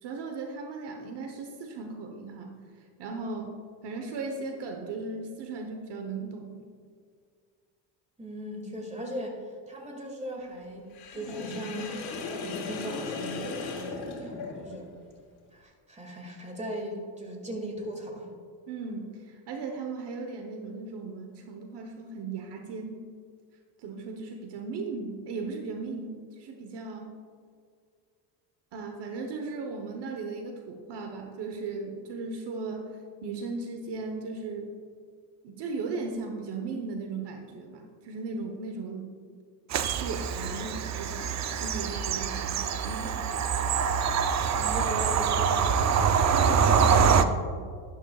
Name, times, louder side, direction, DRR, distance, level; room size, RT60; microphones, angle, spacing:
voice 1, 0.0-2.6 3.0-3.5 3.8-6.7 18.7-23.0 23.8-27.1 28.7-34.7 35.4-39.1 40.0-43.3 46.3-47.7, right 4 dB, 60° right, 4 dB, 1.1 m, -37 dB
voice 2, 8.2-11.9 12.3-14.9 15.5-18.3 44.5-46.1, right 1 dB, 15° right, 1 dB, 2.2 m, -38 dB
Sink (filling or washing), 10.9-14.9, left 4 dB, 75° left, 2.5 m, -36 dB
Bird vocalization bird call bird song / Train, 39.7-47.2, right 6 dB, 35° right, 0.5 m, -25 dB
12.0 x 12.0 x 2.4 m, 2.1 s
cardioid pair, 120°, 47 cm